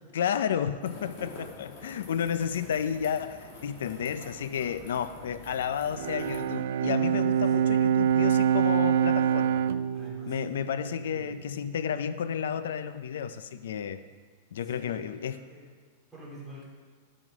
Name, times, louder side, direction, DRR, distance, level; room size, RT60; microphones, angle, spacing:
voice 1, 0.1-9.6 10.3-14.0 14.5-15.4, left 8 dB, 90° left, 13 dB, 0.4 m, -32 dB
sound 1, 0.8-6.4, left 2 dB, 45° left, 1.9 m, -47 dB
Bowed string instrument, 5.9-11.4, right 9 dB, 70° right, 0.3 m, -26 dB
voice 2, 7.2-7.7 9.9-10.4 11.1-11.4 14.6-15.7 16.1-16.6, right 1 dB, ahead, -8 dB, 2.4 m, -48 dB
11.0 x 6.3 x 5.0 m, 1.5 s
supercardioid pair, 170°, 0 cm